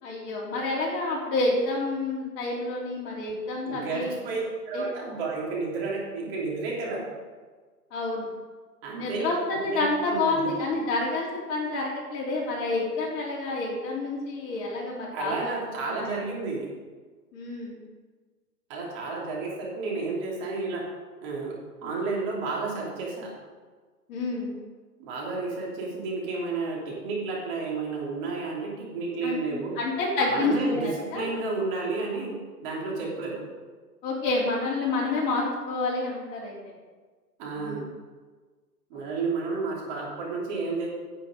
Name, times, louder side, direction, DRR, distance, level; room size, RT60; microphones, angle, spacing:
voice 1, 0.0-4.2 4.7-4.8 7.9-8.3 9.0-15.5 15.8-16.0 17.3-17.8 24.1-24.6 29.2-29.4 29.8-31.2 34.0-36.5 37.6-37.8 38.9-39.0, left 2 dB, 35° left, -4 dB, 3.5 m, -28 dB
voice 2, 3.6-7.0 8.8-9.3 9.7-10.5 15.1-16.7 18.7-20.8 21.2-21.6 21.8-23.3 25.0-29.8 30.3-32.4 32.6-33.5 37.4-37.8 38.9-40.9, right 3 dB, 35° right, -3 dB, 3.1 m, -31 dB
10.5 x 8.9 x 5.0 m, 1.4 s
hypercardioid pair, 135°, 48 cm